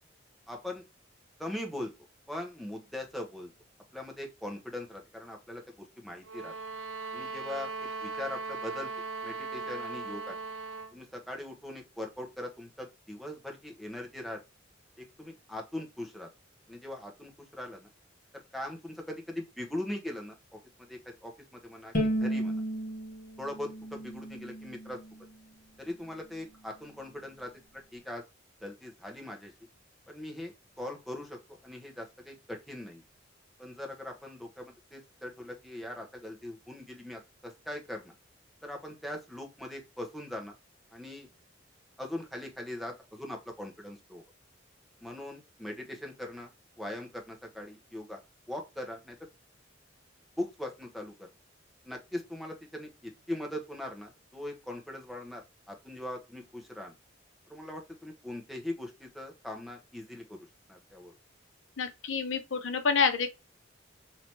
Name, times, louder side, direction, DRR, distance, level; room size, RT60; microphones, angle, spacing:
voice 1, 0.5-0.8 1.4-1.9 2.3-3.5 3.9-5.6 6.0-6.5 7.1-8.9 9.2-10.4 10.9-14.4 15.0-16.3 16.7-17.9 18.5-20.6 20.9-21.9 22.2-22.6 23.4-25.0 25.8-27.5 27.9-28.2 28.6-29.5 30.1-33.0 33.6-38.1 38.6-40.5 40.9-41.3 42.0-44.2 45.0-46.5 46.8-48.2 48.5-49.1 50.4-51.3 51.8-55.4 55.7-56.9 57.5-60.4 60.7-61.1, left 1 dB, ahead, 0.9 m, -40 dB
sound 1, 6.2-11.0, right 3 dB, 65° right, 0.6 m, -38 dB
Bowed string instrument, 21.9-25.2, right 1 dB, 45° left, 1.1 m, -33 dB
voice 2, 61.8-63.3, left 5 dB, 75° left, 0.7 m, -28 dB
3.4 x 2.9 x 4.3 m
head